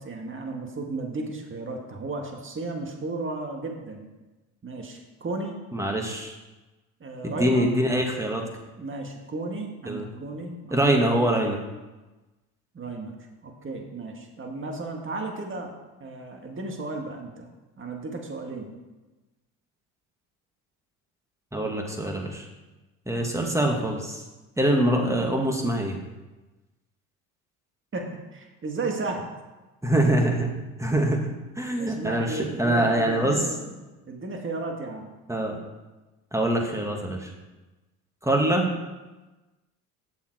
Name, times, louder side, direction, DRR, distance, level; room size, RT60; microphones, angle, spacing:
voice 1, 0.0-4.1 4.6-5.6 7.0-7.7 8.8-10.9 12.7-13.1 13.4-15.7 16.0-17.5 17.8-18.7 27.9-29.3 31.8-33.6 34.1-35.1, right 3 dB, 30° right, 2 dB, 1.9 m, -34 dB
voice 2, 5.7-6.4 7.2-8.4 9.9-10.1 10.7-11.6 21.5-22.5 23.1-24.2 24.6-26.0 29.8-30.5 30.8-31.3 31.6-33.4 35.3-35.5 36.3-37.3 38.2-38.7, right 1 dB, 5° right, 1 dB, 2.1 m, -24 dB
9.0 x 7.0 x 4.7 m, 1.1 s
hypercardioid pair, 65°, 43 cm